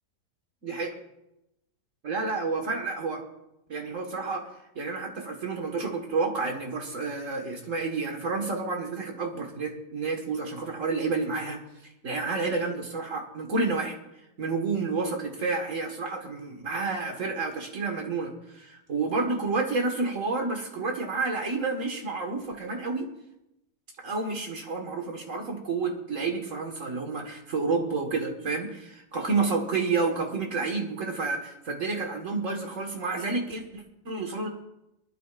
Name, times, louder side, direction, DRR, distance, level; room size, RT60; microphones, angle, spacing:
voice 1, 2.0-3.2 3.7-11.6 12.0-14.0 14.4-23.1 24.0-34.5, right 4 dB, 50° right, 2 dB, 1.9 m, -30 dB
24.0 x 12.0 x 2.5 m, 0.88 s
omnidirectional pair, 1.8 m